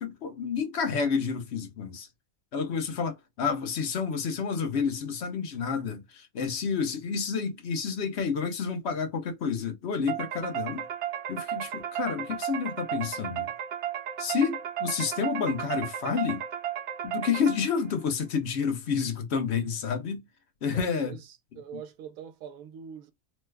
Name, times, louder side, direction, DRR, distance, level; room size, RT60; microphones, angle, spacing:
voice 1, 0.0-2.1 2.5-10.9 11.3-13.5 14.2-16.4 17.0-20.2 20.6-21.2, left 6 dB, 60° left, 0.9 m, -29 dB
sound 1, 10.1-17.9, right 10 dB, 60° right, 0.9 m, -34 dB
voice 2, 20.7-23.1, right 8 dB, 90° right, 1.1 m, -44 dB
3.1 x 2.2 x 3.3 m
omnidirectional pair, 1.4 m